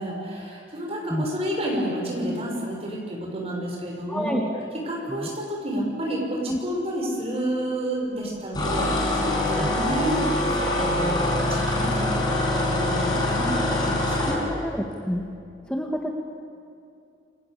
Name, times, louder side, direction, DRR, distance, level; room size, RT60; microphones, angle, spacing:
voice 1, 0.0-4.4 4.7-14.4, right 1 dB, 35° right, -1 dB, 6.8 m, -30 dB
voice 2, 4.1-4.4 5.1-5.3 6.5-6.6 9.6-9.7 14.2-15.2 15.7-16.1, equal, 5° left, 0 dB, 1.7 m, -28 dB
sound 1, 8.5-14.4, left 1 dB, 25° left, 6.2 m, -24 dB
29.5 x 22.0 x 8.6 m, 2.4 s
head